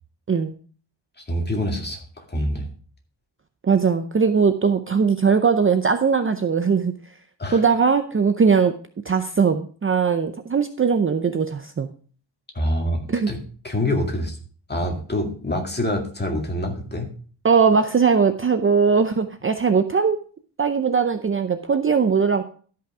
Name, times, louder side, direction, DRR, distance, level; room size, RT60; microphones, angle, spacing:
voice 1, 1.2-2.7 7.4-7.6 12.5-13.4 13.6-14.4 14.7-17.1, left 1 dB, 20° left, 2 dB, 2.2 m, -26 dB
voice 2, 3.6-6.9 7.5-8.7 9.1-11.9 13.1-13.3 17.4-20.2 20.6-22.4, right 5 dB, 30° right, 8 dB, 0.6 m, -20 dB
12.5 x 5.7 x 4.9 m, 0.43 s
wide cardioid pair, 135°, 44 cm